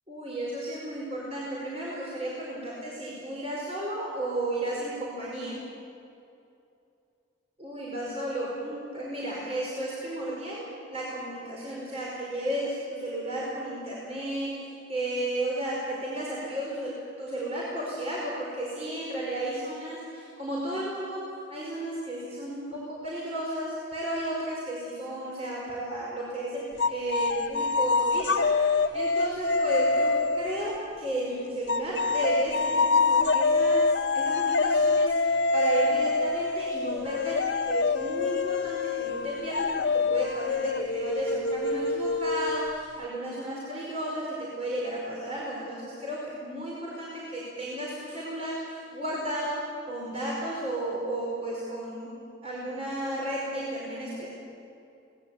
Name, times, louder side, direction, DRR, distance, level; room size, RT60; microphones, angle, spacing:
voice 1, 0.1-5.6 7.6-21.2 21.5-52.2 52.4-54.3, right 1 dB, 35° right, -6 dB, 4.9 m, -33 dB
sound 1, 26.8-30.7 31.7-43.0, left 3 dB, 65° left, 0.8 m, -26 dB
24.5 x 19.0 x 8.5 m, 2.6 s
head